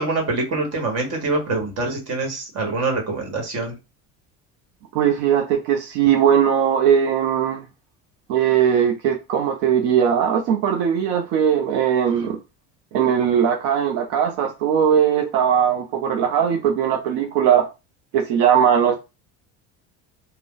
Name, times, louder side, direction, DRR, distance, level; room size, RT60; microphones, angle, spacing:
voice 1, 0.0-3.7, right 3 dB, 45° right, 1.3 m, -25 dB
voice 2, 4.9-7.6 8.3-12.4 12.9-17.6 18.1-19.0, right 8 dB, 85° right, 0.6 m, -19 dB
2.5 x 2.1 x 3.7 m
cardioid pair, 130°, 35 cm